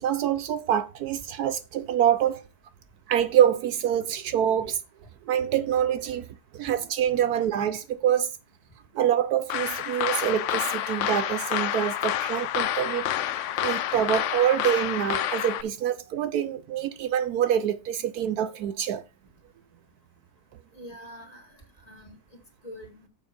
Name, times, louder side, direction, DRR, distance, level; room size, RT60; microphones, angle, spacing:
voice 1, 0.0-2.4 3.1-4.8 5.3-6.3 6.5-8.3 8.9-13.1 13.6-19.0, right 10 dB, 75° right, 1.1 m, -25 dB
sound 1, 9.5-15.6, left 11 dB, 75° left, 0.7 m, -28 dB
voice 2, 20.7-23.1, equal, 25° left, 1.8 m, -46 dB
7.3 x 5.3 x 5.1 m
omnidirectional pair, 1.7 m